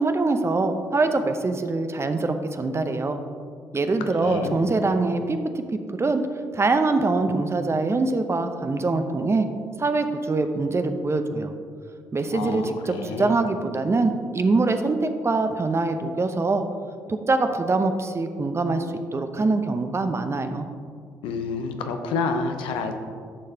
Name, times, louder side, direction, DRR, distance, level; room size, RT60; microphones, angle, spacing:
voice 1, 0.0-3.2 3.7-5.4 6.0-6.2 6.5-9.5 9.8-11.5 12.1-16.6 17.1-18.9 19.1-20.6, right 3 dB, 30° right, 7 dB, 0.7 m, -23 dB
voice 2, 4.2-4.6 12.3-13.3 21.2-22.9, left 4 dB, 70° left, 6 dB, 0.7 m, -29 dB
11.5 x 6.6 x 2.8 m, 2.2 s
hypercardioid pair, 50°, 9 cm